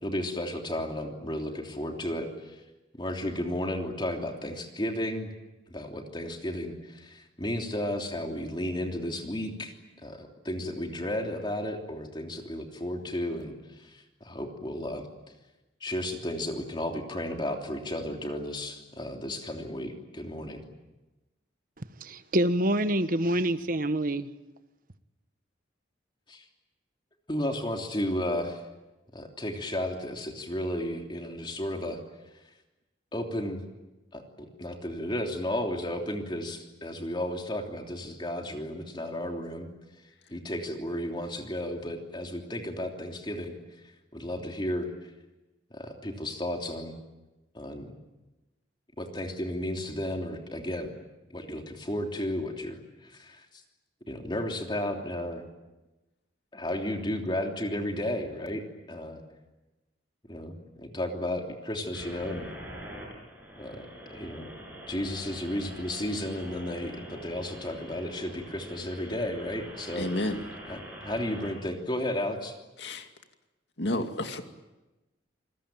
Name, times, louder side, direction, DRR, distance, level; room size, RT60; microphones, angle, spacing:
voice 1, 0.0-2.6 2.9-5.3 5.7-9.7 10.0-15.1 15.8-20.6 26.3-26.5 27.3-28.6 29.1-32.0 33.1-33.6 34.1-34.2 34.6-39.7 40.3-43.6 44.1-44.9 45.7-47.0 47.5-47.9 49.0-50.9 51.3-53.4 54.1-55.4 56.5-59.2 60.3-62.5 63.6-64.5 64.9-70.1 70.7-72.6, left 1 dB, 25° left, 3.1 m, -33 dB
voice 2, 21.8-24.3, right 1 dB, 50° right, 1.2 m, -27 dB
sound 1, 61.9-71.5, right 1 dB, 10° right, 7.9 m, -44 dB
voice 3, 70.0-70.4 72.8-73.1 73.8-74.4, left 1 dB, 65° left, 2.4 m, -30 dB
28.0 x 20.5 x 9.1 m
head